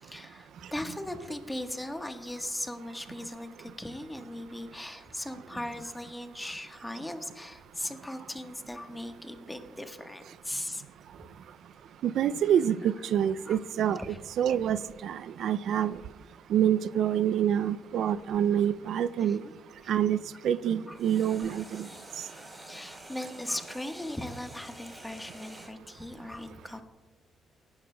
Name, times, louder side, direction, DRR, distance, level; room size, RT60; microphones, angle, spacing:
voice 1, 0.0-10.8 11.2-11.3 13.5-13.6 14.0-14.2 19.2-19.5 19.8-19.9 20.9-21.0 22.6-26.8, left 1 dB, 10° left, 1.2 m, -38 dB
voice 2, 12.0-16.0 16.5-19.4 19.9-20.2 20.4-21.9, right 9 dB, 70° right, 0.3 m, -27 dB
sound 1, 14.7-19.9 21.0-25.7, right 1 dB, 15° right, 3.9 m, -49 dB
18.0 x 11.0 x 2.2 m
cardioid pair, 90°, 0 cm